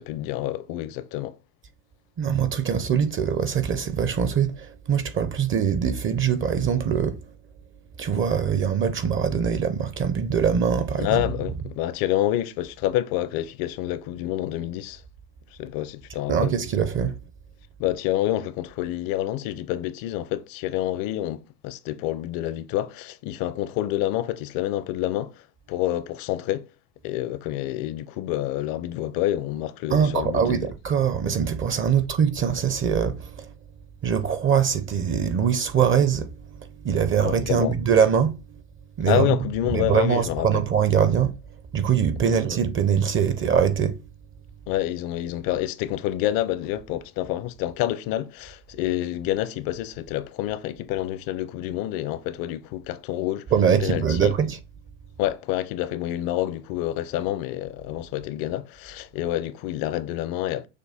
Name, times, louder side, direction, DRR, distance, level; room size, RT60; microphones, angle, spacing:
voice 1, 0.0-1.4 11.0-15.0 15.6-16.5 17.8-26.7 27.0-30.7 37.2-37.7 39.1-40.6 42.2-42.4 44.7-53.4 53.8-54.3 55.2-60.7, left 13 dB, 60° left, 0.6 m, -28 dB
voice 2, 2.2-7.3 8.0-11.2 16.3-17.2 29.9-33.5 34.0-38.6 39.0-39.4 39.7-41.4 41.7-44.1 53.5-54.6, right 7 dB, 30° right, 0.5 m, -23 dB
6.5 x 2.2 x 3.5 m
supercardioid pair, 100°, 40 cm